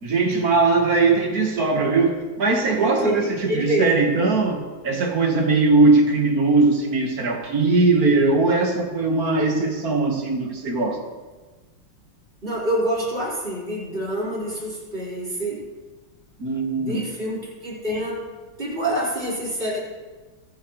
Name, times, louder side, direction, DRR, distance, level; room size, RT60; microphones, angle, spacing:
voice 1, 0.0-11.0 16.4-17.1, right 3 dB, 50° right, 3 dB, 1.7 m, -20 dB
voice 2, 3.0-4.0 12.4-15.6 16.8-18.2 18.6-19.8, right 1 dB, 25° right, -7 dB, 4.4 m, -26 dB
24.0 x 8.8 x 3.1 m, 1.3 s
omnidirectional pair, 2.3 m